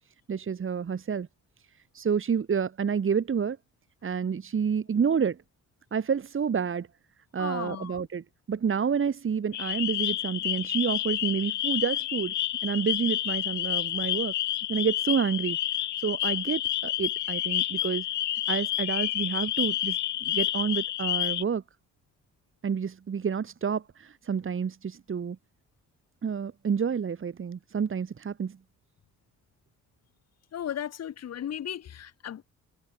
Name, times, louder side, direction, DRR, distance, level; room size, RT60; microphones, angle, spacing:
voice 1, 0.3-1.3 1.9-3.6 4.0-5.4 5.9-6.9 7.3-12.3 12.6-14.3 14.7-15.6 16.0-18.1 18.5-21.6 22.6-25.4 26.2-28.6, right 6 dB, 45° right, 3.5 m, -29 dB
voice 2, 7.4-8.0 30.5-32.4, left 10 dB, 55° left, 1.9 m, -35 dB
sound 1, 9.5-21.4, left 13 dB, 75° left, 1.5 m, -29 dB
cardioid pair, 90°, 30 cm